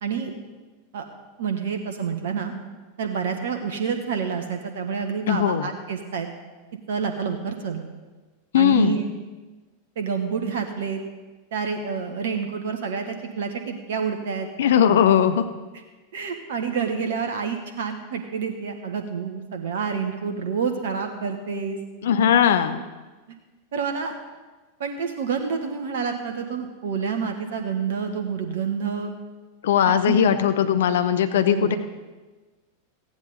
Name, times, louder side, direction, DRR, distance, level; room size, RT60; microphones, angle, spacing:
voice 1, 0.0-0.3 0.9-1.1 1.4-2.5 3.0-6.3 6.9-7.8 8.5-9.0 10.0-11.0 11.5-14.5 16.1-21.8 22.2-22.3 23.7-24.1 24.8-29.1 30.0-30.2 31.5-31.8, right 6 dB, 60° right, 5 dB, 1.2 m, -28 dB
voice 2, 5.3-5.7 8.5-9.0 14.6-15.5 22.0-22.8 29.6-31.8, left 9 dB, 60° left, 9 dB, 0.7 m, -19 dB
15.0 x 10.5 x 4.1 m, 1.3 s
figure-of-eight pair, 90°, 0 cm